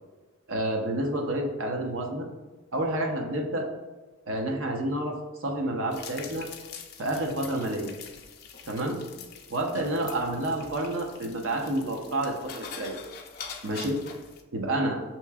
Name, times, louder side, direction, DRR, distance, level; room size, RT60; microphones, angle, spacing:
voice 1, 0.5-2.3 2.7-3.7 4.3-6.5 7.0-7.9 8.7-9.0 9.5-13.0 13.6-14.0 14.5-15.0, right 1 dB, 80° right, 2 dB, 0.7 m, -29 dB
sound 1, 5.9-14.4, left 6 dB, 50° left, 0.4 m, -44 dB
5.6 x 3.0 x 2.3 m, 1.2 s
head